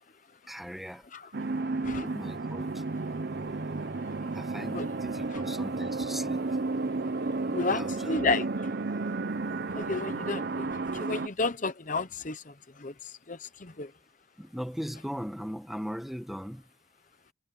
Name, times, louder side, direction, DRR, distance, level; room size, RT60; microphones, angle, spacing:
voice 1, 0.5-1.1 2.0-2.8 4.3-6.6 7.7-8.1 14.4-16.7, equal, ahead, 1.4 m, -39 dB
sound 1, 1.3-11.3, right 3 dB, 50° right, 0.7 m, -32 dB
voice 2, 7.5-8.5 9.7-10.7 10.9-13.9, left 3 dB, 40° left, 0.9 m, -32 dB
head